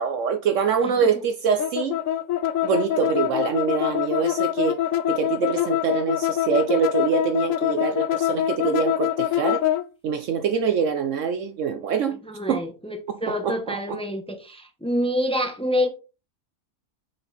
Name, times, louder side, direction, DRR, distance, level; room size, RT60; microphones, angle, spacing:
voice 1, 0.0-2.0 2.6-4.8 5.1-9.6 10.0-12.2 12.5-12.7 13.4-14.0, right 6 dB, 65° right, 0.9 m, -24 dB
voice 2, 0.8-1.1 12.2-15.9, equal, 5° left, 0.9 m, -27 dB
sound 1, 1.6-9.8, left 12 dB, 70° left, 1.0 m, -24 dB
6.5 x 4.4 x 4.1 m
omnidirectional pair, 1.5 m